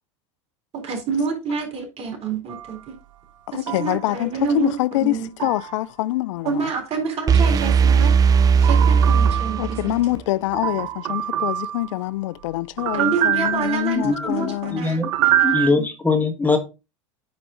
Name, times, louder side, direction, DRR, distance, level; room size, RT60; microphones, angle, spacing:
voice 1, 0.7-2.9 3.5-5.3 6.4-8.1 8.6-9.9 12.9-15.9, right 5 dB, 40° right, 3.8 m, -28 dB
sound 1, 2.5-2.8 3.7-4.1 5.4-5.8 8.6-9.9 10.5-12.0 12.8-14.2 15.0-15.7, right 12 dB, 80° right, 0.7 m, -25 dB
voice 2, 3.5-6.7 9.6-14.8, left 17 dB, 70° left, 0.4 m, -25 dB
sound 2, 7.3-10.2, right 6 dB, 20° right, 0.3 m, -17 dB
voice 3, 13.9-15.1 15.4-16.6, left 3 dB, 10° left, 1.5 m, -22 dB
9.5 x 4.8 x 3.8 m
hypercardioid pair, 95°, 16 cm